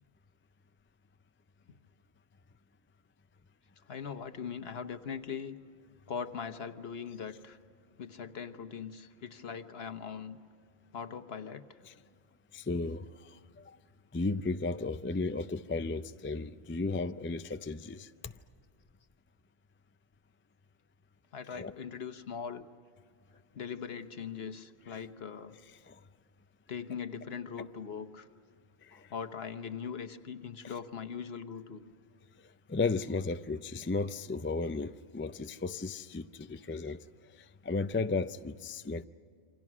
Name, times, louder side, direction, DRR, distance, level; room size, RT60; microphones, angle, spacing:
voice 1, 3.9-5.6 6.1-7.6 8.0-10.4 10.9-11.8 21.3-22.7 23.5-25.5 26.7-28.3 28.9-31.8, left 6 dB, 70° left, 1.3 m, -40 dB
voice 2, 12.5-13.8 14.1-18.3 21.5-21.7 24.9-25.0 25.9-26.0 28.8-29.1 32.7-37.1 37.3-39.0, left 3 dB, 20° left, 0.3 m, -34 dB
28.0 x 25.0 x 6.2 m
omnidirectional pair, 1.1 m